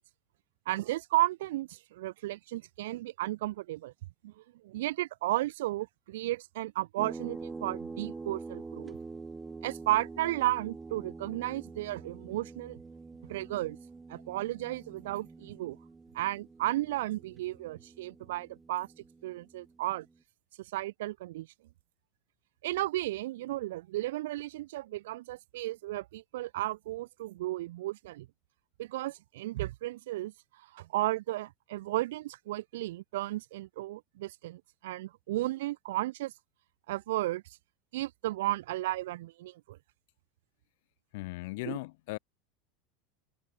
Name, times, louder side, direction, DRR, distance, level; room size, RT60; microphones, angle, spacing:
voice 1, 0.7-3.9 4.2-4.3 4.6-9.0 9.6-12.8 13.3-13.8 14.1-15.8 16.1-18.9 19.2-20.1 20.7-21.5 22.6-28.3 28.8-30.3 30.7-36.3 36.9-37.4 37.9-39.8 41.6-41.8, right 16 dB, 80° right, 0.3 m, -34 dB
sound 1, 7.0-20.1, right 4 dB, 10° right, 1.7 m, -46 dB
voice 2, 41.1-42.2, left 23 dB, 65° left, 0.7 m, -38 dB
supercardioid pair, 165°, 0 cm